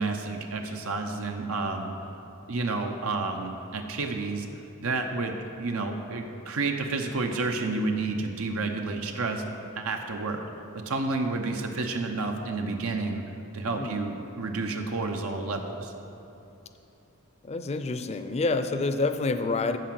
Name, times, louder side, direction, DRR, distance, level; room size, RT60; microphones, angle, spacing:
voice 1, 0.0-1.9 2.5-4.5 4.8-9.4 9.8-10.4 10.7-13.2 13.5-15.9, right 3 dB, 85° right, 4 dB, 0.8 m, -30 dB
voice 2, 17.4-19.8, left 3 dB, 30° left, 9 dB, 0.4 m, -27 dB
13.5 x 4.6 x 7.6 m, 2.8 s
head